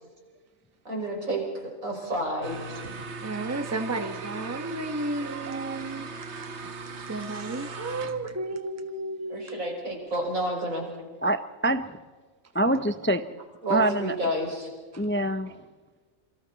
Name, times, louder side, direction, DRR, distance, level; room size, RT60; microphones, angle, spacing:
voice 1, 0.8-2.7 9.3-10.9 13.6-14.7, right 1 dB, 80° right, 0 dB, 6.1 m, -30 dB
sound 1, 2.4-8.4, right 4 dB, 55° right, 1.5 m, -39 dB
voice 2, 3.2-6.1 7.1-9.8 14.9-15.0, right 2 dB, 10° right, 8 dB, 1.2 m, -33 dB
voice 3, 11.2-12.0 12.5-13.2 13.7-14.3 15.0-15.6, right 1 dB, 15° left, 10 dB, 0.5 m, -25 dB
27.5 x 25.0 x 4.1 m, 1.4 s
omnidirectional pair, 1.4 m